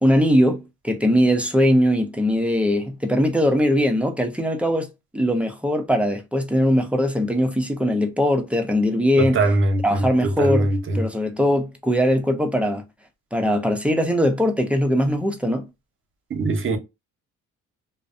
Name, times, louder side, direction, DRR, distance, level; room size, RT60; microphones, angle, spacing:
voice 1, 0.0-4.9 5.1-9.4 9.8-12.8 13.3-15.6, equal, 5° right, 0.5 m, -20 dB
voice 2, 9.2-11.0 16.3-16.8, right 2 dB, 40° right, 0.8 m, -22 dB
2.5 x 2.0 x 2.5 m
cardioid pair, 90°, 30 cm